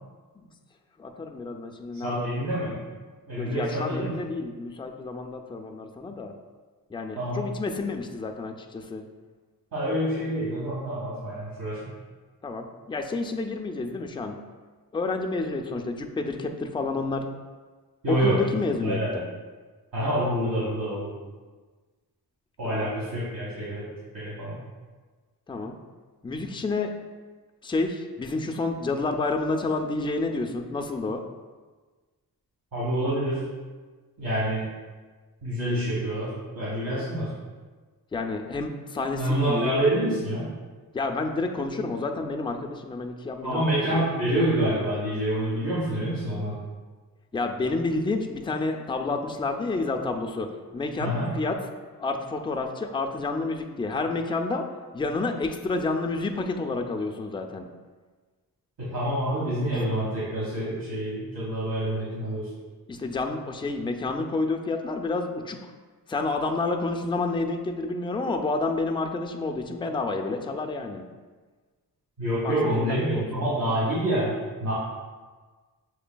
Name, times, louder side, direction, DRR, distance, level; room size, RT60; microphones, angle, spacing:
voice 1, 1.0-2.3 3.4-6.3 6.9-9.0 12.4-14.4 14.9-17.3 18.1-19.3 22.6-22.9 25.5-25.8 26.2-26.9 27.6-31.2 38.1-39.7 40.9-43.7 43.9-44.1 47.3-50.5 50.7-51.6 52.0-54.7 54.9-57.7 59.6-59.9 62.9-65.7 66.1-71.0 72.4-73.2, left 3 dB, 15° left, 3 dB, 0.3 m, -29 dB
voice 2, 2.0-2.8 3.3-4.1 7.1-7.4 9.7-11.9 18.0-18.4 18.8-19.1 19.9-21.1 22.6-23.9 24.1-24.6 32.7-33.5 34.2-34.6 35.4-37.3 39.2-40.4 43.4-46.5 51.0-51.3 58.8-62.5 72.2-74.3 74.6-74.7, right 1 dB, 65° right, -10 dB, 1.5 m, -27 dB
6.8 x 3.2 x 2.2 m, 1.4 s
wide cardioid pair, 85°, 37 cm